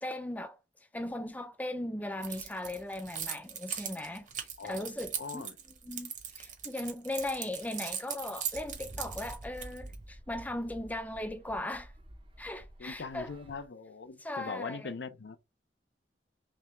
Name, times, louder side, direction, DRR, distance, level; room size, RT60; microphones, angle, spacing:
voice 1, 0.0-0.6 0.9-5.4 5.8-6.1 6.4-11.9 12.4-13.3 14.2-14.9, left 1 dB, 10° left, 0.5 m, -38 dB
Keys jangling, 2.2-10.0, right 8 dB, 45° right, 1.0 m, -39 dB
voice 2, 4.6-4.9 5.2-5.6 12.8-15.4, left 4 dB, 70° left, 0.6 m, -41 dB
sound 1, 8.5-13.7, right 1 dB, 30° right, 0.6 m, -49 dB
3.5 x 3.2 x 3.0 m
head